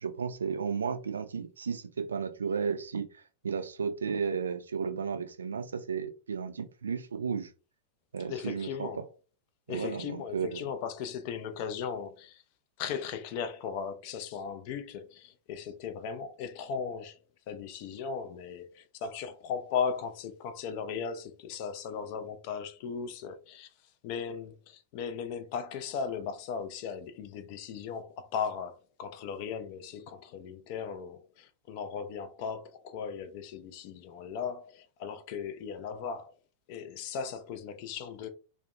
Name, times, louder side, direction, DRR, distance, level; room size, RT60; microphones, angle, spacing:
voice 1, 0.0-7.5 8.1-8.9 9.7-10.6, right 6 dB, 70° right, 0.3 m, -34 dB
voice 2, 8.3-9.0 9.7-12.4 12.8-17.2 17.5-23.7 24.0-36.3 36.7-38.3, left 6 dB, 45° left, 0.4 m, -37 dB
2.4 x 2.0 x 2.4 m
figure-of-eight pair, 90°, 0 cm